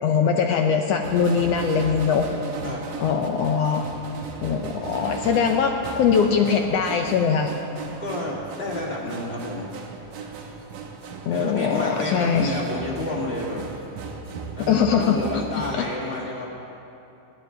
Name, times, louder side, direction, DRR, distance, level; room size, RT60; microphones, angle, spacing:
voice 1, 0.0-2.3 3.0-3.9 4.4-7.5 11.3-12.5 14.7-15.4 15.7-15.9, left 6 dB, 80° left, 4 dB, 1.4 m, -21 dB
sound 1, 1.0-15.7, right 4 dB, 85° right, 2.8 m, -37 dB
voice 2, 8.0-9.7 11.3-13.6 14.5-16.5, left 1 dB, 20° left, -4 dB, 2.0 m, -30 dB
24.0 x 11.5 x 3.9 m, 2.9 s
omnidirectional pair, 3.7 m